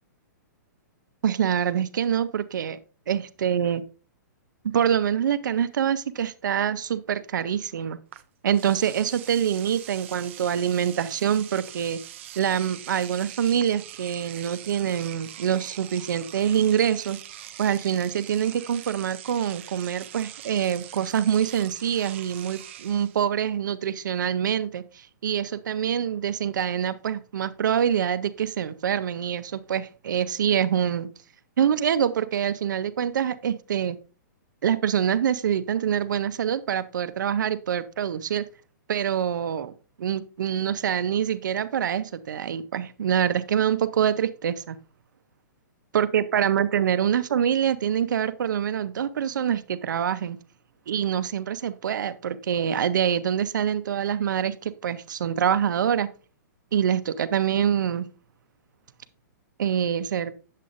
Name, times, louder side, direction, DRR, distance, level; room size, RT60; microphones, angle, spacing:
voice 1, 1.2-2.8 3.1-3.8 4.7-8.0 8.4-12.0 12.4-17.2 17.6-31.1 31.6-34.0 34.6-38.4 38.9-44.8 45.9-50.4 50.9-56.1 56.7-58.1 59.6-60.3, right 9 dB, 75° right, 13 dB, 0.7 m, -25 dB
Engine / Domestic sounds home sounds, 8.1-8.2 8.5-23.2, right 12 dB, 40° right, 0.4 m, -43 dB
8.5 x 7.4 x 2.5 m, 0.36 s
hypercardioid pair, 170°, 10 cm